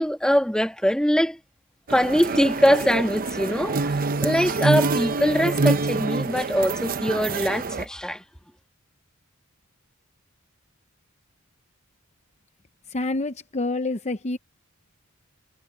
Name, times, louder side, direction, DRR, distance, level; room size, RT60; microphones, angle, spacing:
voice 1, 0.0-1.4 1.9-8.2, equal, 5° left, 1.5 m, -22 dB
sound 1, 1.9-7.8, right 3 dB, 45° right, 0.8 m, -26 dB
voice 2, 12.9-14.4, left 2 dB, 30° left, 0.8 m, -27 dB
head